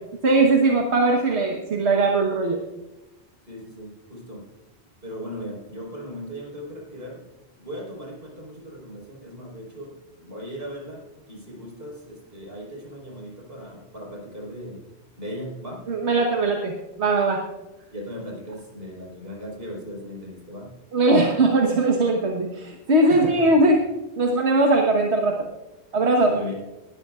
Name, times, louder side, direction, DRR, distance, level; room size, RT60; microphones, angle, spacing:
voice 1, 0.2-2.6 15.9-17.4 20.9-23.8 24.2-25.5 25.9-26.4, right 2 dB, 85° right, 1 dB, 1.6 m, -20 dB
voice 2, 3.5-4.4 5.0-7.2 7.6-14.8 15.2-15.8 17.9-20.8 23.1-23.5 26.2-26.5, equal, 65° right, -2 dB, 4.9 m, -37 dB
20.0 x 13.5 x 2.5 m, 1.0 s
omnidirectional pair, 1.1 m